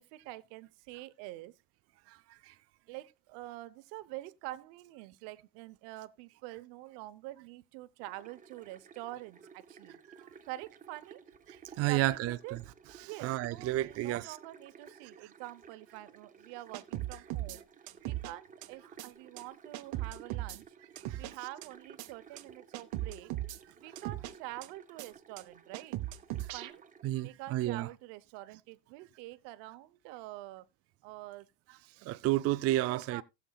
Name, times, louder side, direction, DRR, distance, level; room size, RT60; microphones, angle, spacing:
voice 1, 0.0-1.6 2.9-10.0 10.4-11.2 11.8-12.6 13.0-17.6 18.0-20.7 21.1-23.3 23.8-26.0 26.5-26.8 27.2-30.7 31.0-31.5 32.8-33.2, right 16 dB, 80° right, 1.0 m, -46 dB
voice 2, 2.1-2.5 10.1-10.2 11.5-12.6 13.0-14.3 21.1-21.3 27.0-27.9 32.0-33.2, right 15 dB, 35° right, 0.4 m, -32 dB
sound 1, 8.0-27.1, right 6 dB, 20° right, 0.8 m, -56 dB
sound 2, 16.7-17.6 17.9-18.3 18.6-18.7 19.0-19.1 19.4-19.5 19.7-20.6 21.0-21.3 21.6-21.7 22.0-22.1 22.4-22.5 22.7-23.6 24.0-24.3 24.6-24.7 25.0-25.1 25.4-25.5 25.7-26.7, right 15 dB, 55° right, 1.0 m, -37 dB
18.5 x 7.1 x 2.3 m
cardioid pair, 145°, 43 cm